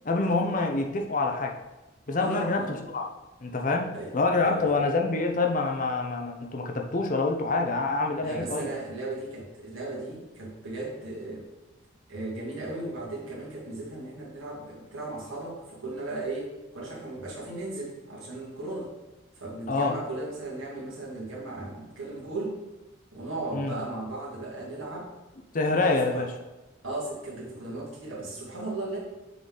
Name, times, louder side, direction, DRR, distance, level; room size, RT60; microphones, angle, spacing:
voice 1, 0.0-1.6 2.1-2.6 2.9-3.1 3.4-8.7 19.7-20.0 23.5-23.8 25.5-26.3, left 3 dB, 40° left, 3 dB, 0.6 m, -26 dB
voice 2, 2.2-2.7 3.9-4.1 4.4-4.8 8.2-11.5 12.1-18.9 19.4-22.6 23.1-25.1 25.8-26.2 26.8-29.0, right 2 dB, 85° right, -4 dB, 2.0 m, -36 dB
6.8 x 4.0 x 3.8 m, 1.1 s
head